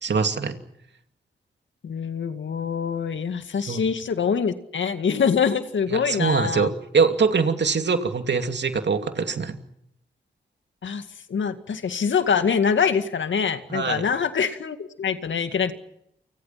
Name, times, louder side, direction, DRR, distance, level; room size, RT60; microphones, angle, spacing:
voice 1, 0.0-0.6 3.7-3.8 5.9-9.6 13.7-14.1, right 5 dB, 65° right, 7 dB, 2.7 m, -23 dB
voice 2, 1.8-6.7 10.8-11.0 11.3-15.7, left 6 dB, 75° left, 9 dB, 2.1 m, -24 dB
29.5 x 25.0 x 5.9 m, 0.76 s
cardioid pair, 50°, 20 cm